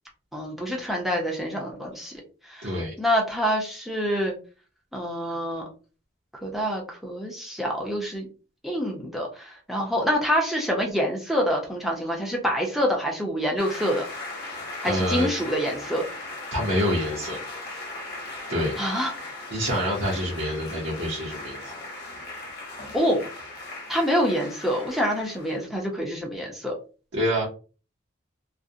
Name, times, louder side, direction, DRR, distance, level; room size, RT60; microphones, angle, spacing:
voice 1, 0.3-2.1 2.5-4.3 4.9-5.7 6.4-8.3 8.6-14.0 14.8-16.1 18.8-19.1 22.9-23.2 23.9-26.7, equal, ahead, -1 dB, 0.5 m, -26 dB
voice 2, 2.6-2.9 14.8-15.3 16.5-17.4 18.5-18.8 19.5-21.7 27.1-27.5, equal, 60° right, -6 dB, 0.7 m, -26 dB
sound 1, 13.6-25.7, left 2 dB, 50° left, 0.8 m, -38 dB
2.4 x 2.1 x 2.6 m, 0.35 s
head